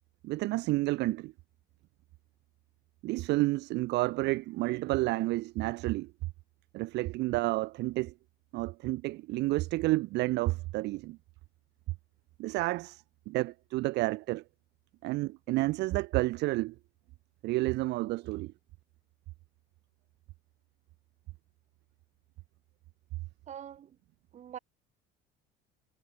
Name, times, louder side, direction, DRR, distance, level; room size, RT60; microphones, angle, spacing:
voice 1, 0.2-1.3 3.0-6.1 6.7-8.1 8.5-11.2 12.4-14.4 15.0-16.7 17.4-18.5, right 20 dB, 60° right, 0.4 m, -30 dB
voice 2, 23.5-24.0 24.3-24.6, right 9 dB, 35° right, 1.9 m, -44 dB
cardioid pair, 155°, 20 cm